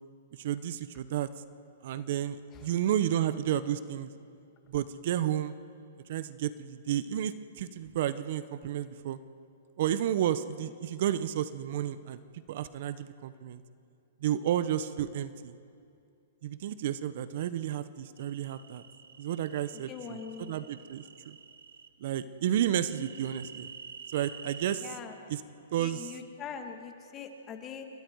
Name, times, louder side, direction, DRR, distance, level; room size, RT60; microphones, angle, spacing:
voice 1, 0.4-1.3 1.8-4.1 4.7-5.5 6.1-9.2 9.8-12.2 12.5-13.6 14.2-15.5 16.4-18.8 19.2-21.4 22.0-23.7 24.1-25.0 25.3-25.4 25.7-26.2, right 11 dB, 55° right, 14 dB, 0.9 m, -31 dB
sound 1, 18.2-21.9 22.8-24.8, right 6 dB, 85° right, 1.2 m, -49 dB
voice 2, 19.7-20.6 24.8-25.2 25.8-27.8, left 7 dB, 25° left, 5 dB, 2.1 m, -43 dB
28.5 x 22.0 x 4.8 m, 2.4 s
hypercardioid pair, 130°, 0 cm